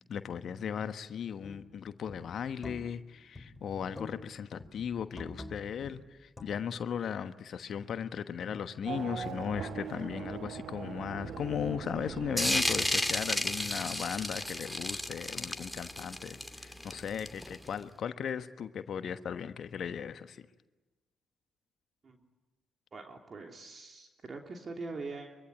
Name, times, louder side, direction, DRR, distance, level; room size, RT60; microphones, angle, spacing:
voice 1, 0.1-20.4, left 8 dB, 55° left, 11 dB, 1.2 m, -37 dB
sound 1, 1.4-1.7 2.1-3.1 3.4-4.3 4.6-6.8, left 2 dB, 20° left, 4.1 m, -48 dB
Race car auto racing / Accelerating revving vroom, 8.8-13.6, right 8 dB, 60° right, 1.4 m, -41 dB
sound 2, 12.4-17.7, left 1 dB, 5° left, 2.7 m, -32 dB
voice 2, 22.9-25.4, right 3 dB, 40° right, 2 dB, 3.1 m, -43 dB
24.5 x 24.5 x 9.9 m, 1.2 s
hypercardioid pair, 45°, 0 cm